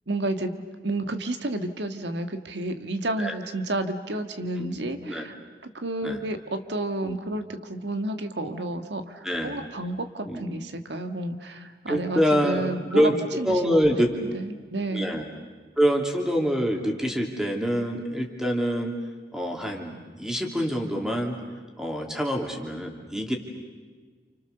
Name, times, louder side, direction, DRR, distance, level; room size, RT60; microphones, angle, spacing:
voice 1, 0.1-5.3 5.6-13.8 14.3-15.1, right 2 dB, 85° right, 7 dB, 1.7 m, -31 dB
voice 2, 9.2-9.6 10.3-10.6 11.9-13.1 13.4-14.1 14.9-15.2 15.8-18.9 19.3-21.4 21.8-23.3, equal, 5° right, 2 dB, 2.9 m, -25 dB
29.5 x 29.0 x 6.8 m, 1.4 s
head